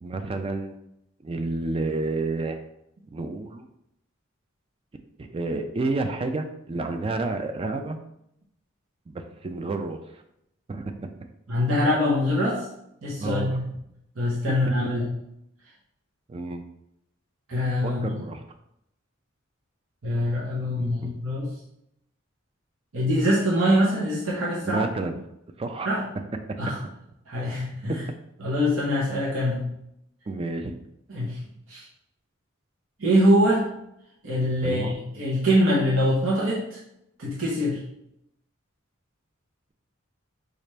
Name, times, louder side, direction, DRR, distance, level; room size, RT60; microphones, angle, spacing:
voice 1, 0.0-0.8 1.2-2.6 3.1-3.7 5.2-8.0 9.1-10.0 10.7-11.1 13.2-13.6 16.3-16.6 17.8-18.4 20.8-21.1 24.6-25.1 25.6-25.9 27.9-28.0 30.3-30.7 34.6-35.0, right 3 dB, 25° right, 6 dB, 0.3 m, -30 dB
voice 2, 11.5-12.7 13.0-13.6 14.2-15.1 17.5-18.2 20.0-21.5 22.9-24.8 25.8-26.0 26.6-26.8 27.3-28.0 28.4-29.6 31.1-31.4 31.7-31.8 33.0-33.7 34.2-36.8 37.2-37.8, equal, 80° right, -6 dB, 0.9 m, -23 dB
4.2 x 2.4 x 3.2 m, 0.79 s
head